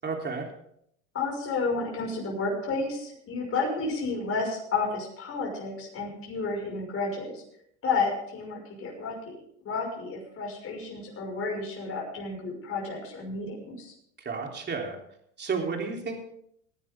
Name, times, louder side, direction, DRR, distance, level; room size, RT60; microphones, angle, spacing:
voice 1, 0.0-0.5 14.3-15.0 15.4-16.1, right 5 dB, 30° right, 1 dB, 3.5 m, -31 dB
voice 2, 1.1-7.4 7.8-9.3 9.6-13.9, left 4 dB, 35° left, -1 dB, 5.9 m, -31 dB
19.0 x 10.5 x 3.7 m, 0.70 s
supercardioid pair, 100°, 37 cm